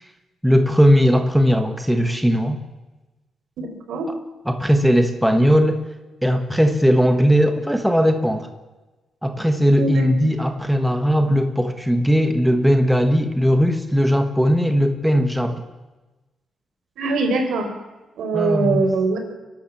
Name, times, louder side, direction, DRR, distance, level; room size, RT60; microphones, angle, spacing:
voice 1, 0.4-2.6 4.5-5.8 6.2-8.5 9.2-15.6 18.3-18.9, equal, ahead, 6 dB, 1.2 m, -18 dB
voice 2, 3.6-4.1 9.8-10.3 17.0-17.7 18.2-19.2, right 3 dB, 75° right, 5 dB, 4.6 m, -22 dB
29.5 x 12.0 x 7.5 m, 1.1 s
wide cardioid pair, 165°, 0 cm